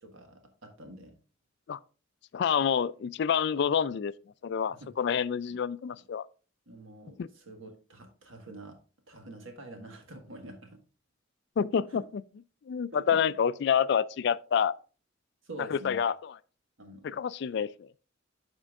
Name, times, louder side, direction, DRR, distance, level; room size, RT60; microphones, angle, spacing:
voice 1, 0.0-1.1 4.8-4.9 5.5-5.6 6.7-8.8 9.1-10.8 11.9-12.0 12.9-13.2 15.4-16.0 16.8-17.2, right 1 dB, 80° right, 1.6 m, -46 dB
voice 2, 2.3-4.1 4.4-6.3 7.2-7.3 11.6-12.0 12.7-14.7 15.6-16.3 17.0-17.7, left 7 dB, 60° left, 0.3 m, -28 dB
12.5 x 4.4 x 2.4 m
head